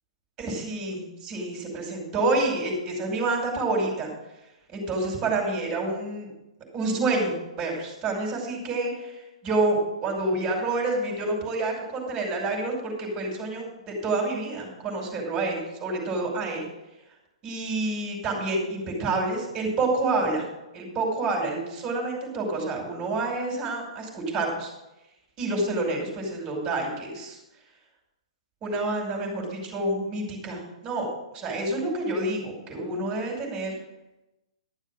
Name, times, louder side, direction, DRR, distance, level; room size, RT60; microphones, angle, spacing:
voice 1, 0.4-4.1 4.7-6.3 6.7-16.6 17.4-20.4 20.7-24.7 25.4-27.4 28.6-31.1 31.3-33.7, right 2 dB, 25° right, 0 dB, 5.5 m, -28 dB
13.0 x 7.3 x 6.4 m, 0.96 s
figure-of-eight pair, 120°, 3 cm